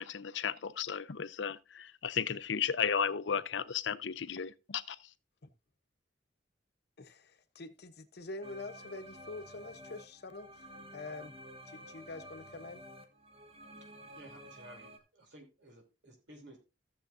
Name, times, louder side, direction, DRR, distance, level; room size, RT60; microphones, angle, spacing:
voice 1, 0.0-5.1, left 7 dB, 80° left, 0.6 m, -34 dB
voice 2, 7.0-11.3 11.6-12.8, left 2 dB, 60° left, 0.9 m, -46 dB
sound 1, 8.4-15.0, equal, 35° right, 1.4 m, -51 dB
voice 3, 14.1-16.6, right 1 dB, 75° right, 3.2 m, -55 dB
15.5 x 7.2 x 2.6 m
head